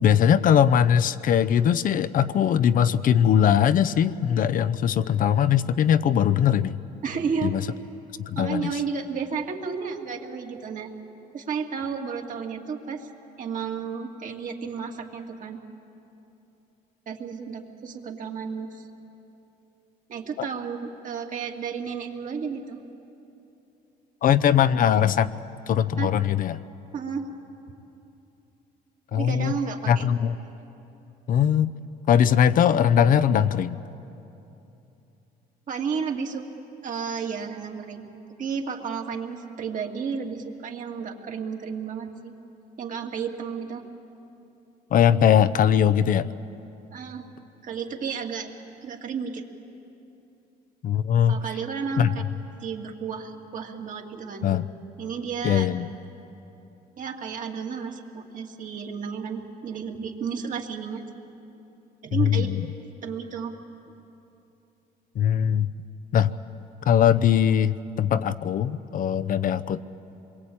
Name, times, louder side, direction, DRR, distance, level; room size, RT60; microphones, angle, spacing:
voice 1, 0.0-6.8 7.4-7.6 8.2-8.7 20.4-20.5 24.2-25.3 25.7-26.6 29.1-29.5 29.9-30.3 31.3-31.7 32.1-33.8 44.9-46.3 50.8-51.4 52.0-52.1 54.4-54.6 55.4-55.9 62.1-62.7 65.2-65.7 66.1-66.3 66.9-69.8, left 9 dB, 55° left, 13 dB, 0.7 m, -21 dB
voice 2, 7.0-7.5 8.4-10.9 11.3-13.1 13.4-15.6 17.1-18.8 20.1-22.8 26.0-26.1 26.9-27.3 29.1-30.1 35.7-36.5 36.8-38.1 38.4-42.3 42.8-43.8 46.9-47.3 47.6-48.5 48.8-49.4 51.3-52.1 52.6-54.5 55.0-55.7 57.0-61.0 62.0-62.5 63.0-63.5, right 6 dB, 50° right, 2 dB, 2.4 m, -32 dB
26.5 x 22.5 x 8.7 m, 2.9 s
cardioid pair, 110°, 17 cm